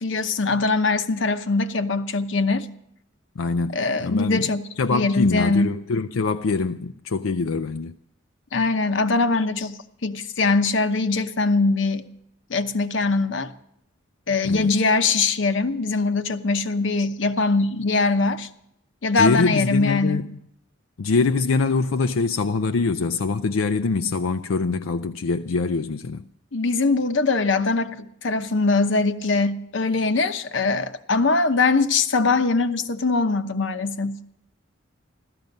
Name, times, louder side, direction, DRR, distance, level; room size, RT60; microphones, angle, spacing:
voice 1, 0.0-2.7 3.7-5.7 8.5-12.0 12.5-13.5 14.3-18.5 19.0-20.2 26.5-34.2, left 3 dB, 70° left, 0.9 m, -22 dB
voice 2, 3.4-8.0 14.4-14.7 19.2-20.4 21.0-26.3, left 4 dB, 90° left, 0.5 m, -24 dB
15.5 x 13.5 x 5.4 m
head